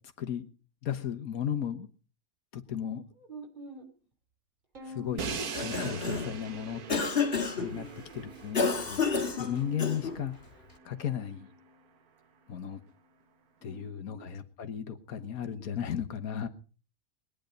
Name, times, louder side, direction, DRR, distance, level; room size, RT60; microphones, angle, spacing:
voice 1, 0.2-0.5 0.8-1.9 2.5-3.0 4.8-6.8 7.6-7.8 8.1-9.0 9.4-10.3 10.8-11.5 12.5-12.8 13.6-16.5, left 9 dB, 70° left, 7 dB, 1.7 m, -35 dB
voice 2, 3.1-3.9 7.7-8.3 13.6-14.2, right 3 dB, 30° right, 1 dB, 3.3 m, -47 dB
Bowed string instrument, 4.8-7.1 7.6-8.4 9.3-11.9, left 5 dB, 60° right, 3.8 m, -50 dB
Crash cymbal, 5.2-11.2, right 6 dB, 75° right, 1.7 m, -42 dB
Cough, 5.4-6.4 6.9-7.7 8.5-10.2, left 5 dB, 40° left, 1.9 m, -30 dB
20.5 x 10.5 x 5.2 m, 0.39 s
omnidirectional pair, 1.6 m